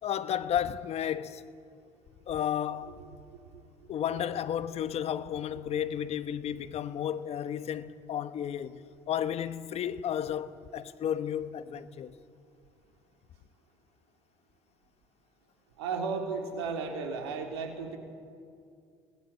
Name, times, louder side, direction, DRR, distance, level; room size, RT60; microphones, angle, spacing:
voice 1, 0.0-1.4 2.3-3.0 3.9-12.2, left 9 dB, 50° left, 1.1 m, -33 dB
voice 2, 2.8-3.4 15.8-18.0, right 4 dB, 85° right, 3.5 m, -35 dB
25.5 x 19.5 x 8.5 m
hypercardioid pair, 70°, 13 cm